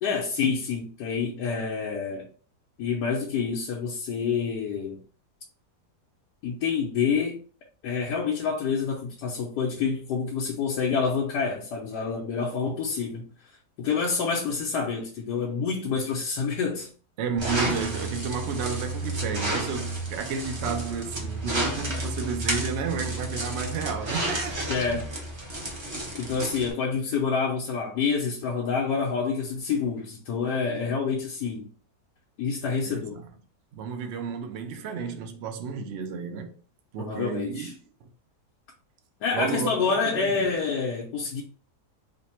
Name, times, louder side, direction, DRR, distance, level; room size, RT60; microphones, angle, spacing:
voice 1, 0.0-2.3 2.8-5.0 6.4-7.4 7.8-13.3 13.8-16.9 24.7-25.0 26.1-31.7 32.4-33.2 37.0-37.7 39.2-41.4, left 5 dB, 85° left, 1.3 m, -27 dB
voice 2, 17.2-24.7 32.9-33.3 33.7-36.6 36.9-37.7 38.0-38.1 39.3-40.5, right 6 dB, 70° right, 0.6 m, -32 dB
sound 1, 17.4-26.7, right 1 dB, 25° right, 0.6 m, -31 dB
3.2 x 2.1 x 4.2 m
omnidirectional pair, 1.7 m